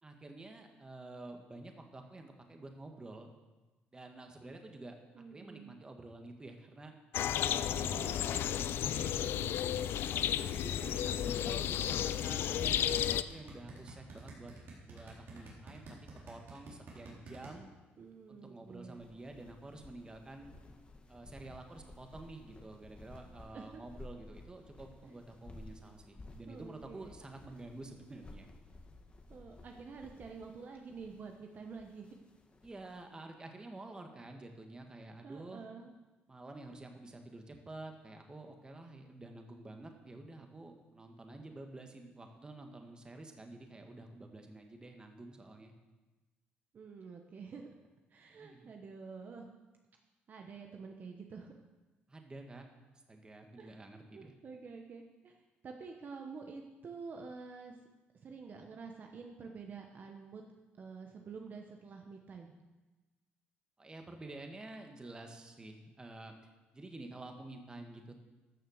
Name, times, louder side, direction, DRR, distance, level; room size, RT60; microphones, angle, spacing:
voice 1, 0.0-3.3 3.9-6.9 7.3-9.5 10.1-14.5 14.9-16.0 16.3-17.7 18.3-20.5 21.1-28.5 32.6-35.6 36.3-45.7 48.4-48.7 52.1-52.7 52.9-54.3 63.8-66.3 66.7-68.2, right 2 dB, 20° right, 4 dB, 1.6 m, -49 dB
voice 2, 5.1-5.8 7.8-8.2 10.8-11.6 18.0-19.0 23.5-23.9 25.0-25.1 26.5-27.1 29.3-32.1 35.2-35.9 46.7-47.7 48.1-49.5 50.3-51.5 53.6-53.8 54.1-55.4 55.6-57.8 58.2-60.4 60.8-62.5, right 5 dB, 45° right, 3 dB, 1.1 m, -48 dB
sound 1, 7.1-13.2, left 10 dB, 70° left, 0.4 m, -33 dB
sound 2, 12.5-17.5, right 4 dB, 70° right, 3.7 m, -50 dB
sound 3, 18.8-33.0, left 2 dB, 25° left, 1.4 m, -55 dB
13.5 x 6.5 x 6.5 m, 1.1 s
cardioid pair, 105°, 4 cm